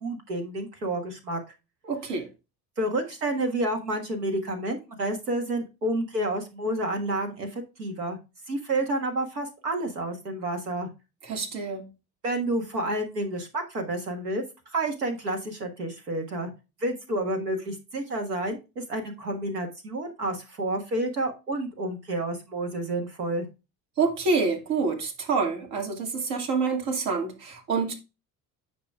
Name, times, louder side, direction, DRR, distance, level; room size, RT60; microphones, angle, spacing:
voice 1, 0.0-1.4 2.8-8.2 8.5-10.9 12.2-14.4 14.7-16.5 16.8-23.5, right 1 dB, 90° right, 1.6 m, -30 dB
voice 2, 1.9-2.3 11.2-11.9 24.0-28.0, right 4 dB, 70° right, 2.0 m, -27 dB
9.4 x 6.0 x 2.3 m
figure-of-eight pair, 60°, 46 cm